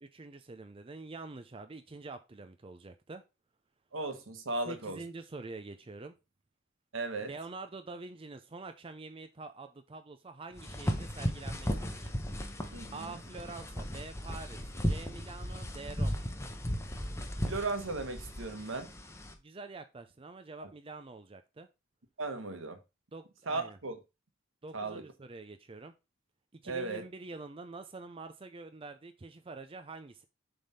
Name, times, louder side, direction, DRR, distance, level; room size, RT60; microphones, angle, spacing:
voice 1, 0.0-3.2 4.7-6.1 7.3-12.1 12.9-16.3 19.4-21.7 23.1-23.8 24.6-25.9 26.6-30.3, right 3 dB, 25° right, 0.5 m, -46 dB
voice 2, 3.9-5.0 6.9-7.3 12.7-13.1 17.4-18.9 20.6-20.7 22.2-22.8 23.5-24.0 24.7-25.0 26.6-27.0, right 3 dB, 70° right, 1.3 m, -36 dB
sound 1, 10.6-19.3, equal, 15° left, 0.9 m, -36 dB
7.3 x 3.5 x 5.6 m
head